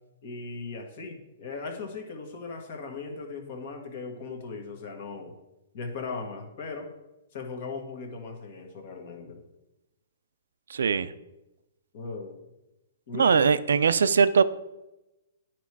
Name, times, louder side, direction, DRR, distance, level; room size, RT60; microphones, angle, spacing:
voice 1, 0.2-5.3 5.7-6.9 7.3-9.4 11.9-12.4 13.1-13.6, left 4 dB, 50° left, 3 dB, 1.4 m, -38 dB
voice 2, 10.7-11.1 13.1-14.4, right 6 dB, 85° right, 14 dB, 0.4 m, -21 dB
9.2 x 3.1 x 4.6 m, 0.97 s
hypercardioid pair, 150°, 0 cm